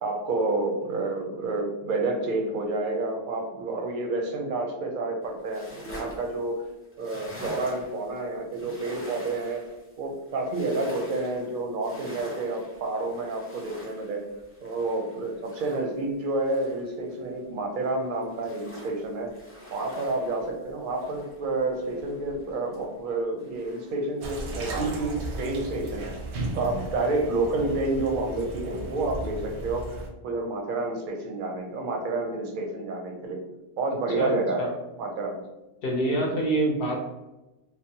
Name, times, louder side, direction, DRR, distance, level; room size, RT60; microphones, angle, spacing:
voice 1, 0.0-6.6 7.0-9.6 10.0-14.3 14.6-19.3 19.7-30.0 30.2-33.4 33.8-35.4 36.2-36.3, right 2 dB, 60° right, 2 dB, 0.6 m, -29 dB
sound 1, 5.2-17.4 17.8-23.1 23.4-24.9, equal, 20° left, 0.4 m, -47 dB
sound 2, 24.2-30.1, right 2 dB, 85° right, 0.9 m, -35 dB
voice 2, 34.2-34.7 35.8-37.0, right 1 dB, 65° left, 0 dB, 0.8 m, -26 dB
2.6 x 2.0 x 2.7 m, 1.0 s
omnidirectional pair, 1.1 m